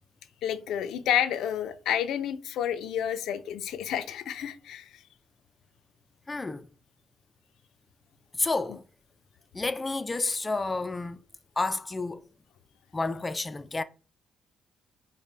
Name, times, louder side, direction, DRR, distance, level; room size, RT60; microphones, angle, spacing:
voice 1, 0.4-4.9, left 10 dB, 80° left, 0.5 m, -30 dB
voice 2, 6.3-6.7 8.4-8.8 9.5-11.2 11.6-12.2 12.9-13.8, left 3 dB, 20° left, 0.3 m, -30 dB
4.9 x 2.1 x 3.3 m
cardioid pair, 90°, 0 cm